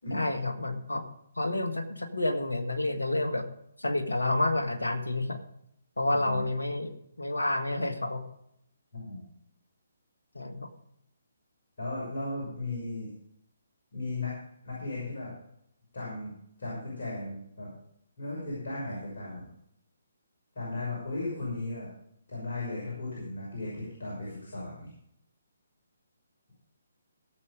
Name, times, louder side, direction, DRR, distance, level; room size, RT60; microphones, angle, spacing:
voice 1, 0.1-1.1 1.3-3.5 3.8-5.4 6.0-8.2 10.3-10.7, left 2 dB, 80° left, 6 dB, 1.7 m, -29 dB
voice 2, 6.1-6.4 8.9-9.2 11.8-13.1 13.9-14.3 14.6-15.3 15.9-16.3 16.6-17.7 18.2-19.5 20.5-21.9 22.3-24.9, left 2 dB, 60° left, -6 dB, 6.3 m, -36 dB
17.0 x 7.3 x 5.0 m, 0.73 s
figure-of-eight pair, 140°, 0 cm